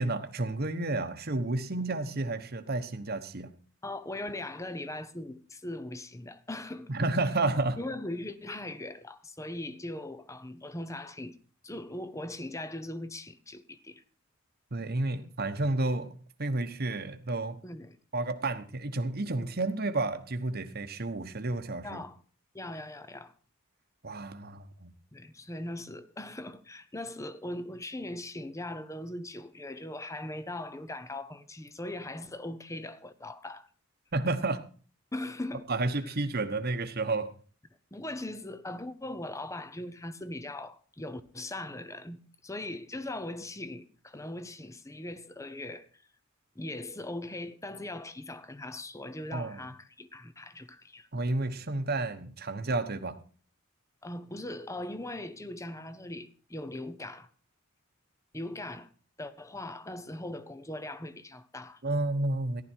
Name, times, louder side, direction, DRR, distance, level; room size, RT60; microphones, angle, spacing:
voice 1, 0.0-3.5 6.9-7.8 14.7-16.1 16.4-17.6 18.1-22.0 24.0-24.9 34.1-34.6 35.7-37.3 49.3-49.6 51.1-53.2 61.8-62.6, right 2 dB, 45° right, 1.2 m, -31 dB
voice 2, 3.8-6.9 7.8-11.4 11.6-14.0 17.6-18.0 21.8-22.2 22.5-23.3 25.1-33.7 35.1-35.7 36.0-36.1 37.9-46.0 46.5-51.1 54.0-57.3 58.3-58.9 59.2-61.8, left 1 dB, 15° left, 0.8 m, -40 dB
14.5 x 11.5 x 4.6 m
head